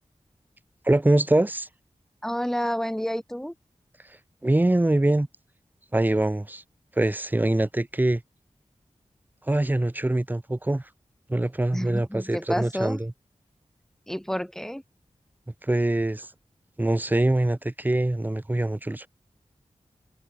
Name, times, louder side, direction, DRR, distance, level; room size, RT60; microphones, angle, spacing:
voice 1, 0.8-1.7 4.4-5.3 5.9-6.6 7.0-8.2 9.5-10.8 11.3-13.1 15.6-16.3 16.8-19.1, right 1 dB, 15° right, 0.8 m, -23 dB
voice 2, 2.2-3.5 11.7-13.0 14.1-14.8, equal, 5° left, 1.6 m, -29 dB
wide cardioid pair, 90°, 12 cm